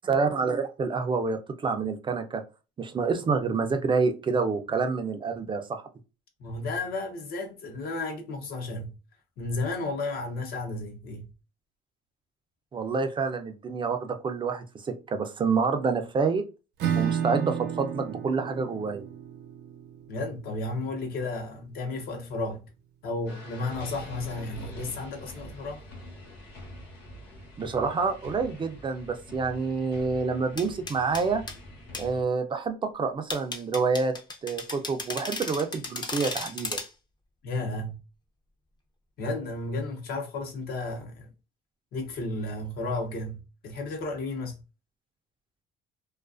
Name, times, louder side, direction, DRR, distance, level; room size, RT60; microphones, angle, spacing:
voice 1, 0.0-2.4 2.8-5.8 12.7-16.4 17.0-19.0 27.6-31.4 32.0-34.1 34.4-36.8, right 4 dB, 30° right, 0.4 m, -28 dB
voice 2, 6.4-9.0 9.4-11.3 20.1-22.7 23.0-25.8 37.4-38.0 39.2-41.3 41.9-44.6, left 2 dB, 65° left, 0.8 m, -33 dB
Acoustic guitar / Strum, 16.8-22.2, right 8 dB, 75° right, 0.7 m, -33 dB
sound 1, 23.3-32.2, left 1 dB, 85° left, 1.1 m, -44 dB
sound 2, 30.6-31.6 31.9-32.1 33.3-36.9, left 3 dB, 25° left, 0.5 m, -35 dB
2.4 x 2.3 x 2.4 m
cardioid pair, 110°, 17 cm